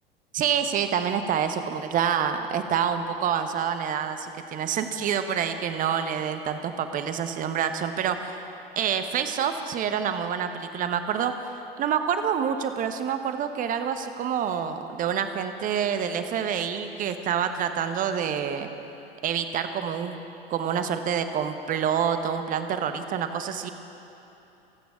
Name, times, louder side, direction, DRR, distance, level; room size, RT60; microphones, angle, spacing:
voice 1, 0.3-8.4 8.8-11.3 11.8-18.7 19.2-20.2 20.5-23.7, right 8 dB, 25° right, 9 dB, 1.0 m, -27 dB
27.5 x 9.4 x 5.0 m, 2.9 s
figure-of-eight pair, 85°, 30 cm